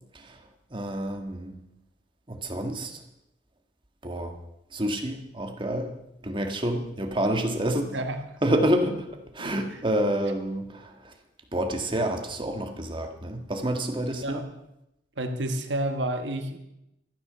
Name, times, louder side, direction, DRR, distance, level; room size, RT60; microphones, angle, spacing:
voice 1, 0.1-0.4 0.7-1.6 2.3-3.0 4.0-4.3 4.7-5.9 6.2-8.0 8.4-9.1 9.3-11.1 11.5-14.4, right 1 dB, 30° right, 5 dB, 1.7 m, -28 dB
voice 2, 15.2-16.6, right 1 dB, 85° right, 6 dB, 1.5 m, -29 dB
14.5 x 9.6 x 6.9 m, 0.85 s
head